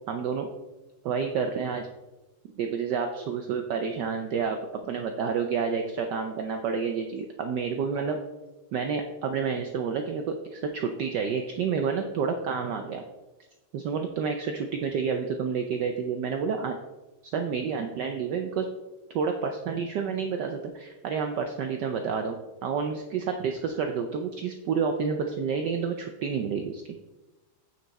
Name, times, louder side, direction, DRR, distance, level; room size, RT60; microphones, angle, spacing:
voice 1, 0.1-0.5 1.0-1.9 2.5-4.6 4.8-8.2 8.7-13.0 13.7-16.8 17.3-18.7 19.1-22.4 22.6-26.8, right 6 dB, 70° right, 5 dB, 1.0 m, -29 dB
9.2 x 4.7 x 4.0 m, 1.1 s
omnidirectional pair, 2.4 m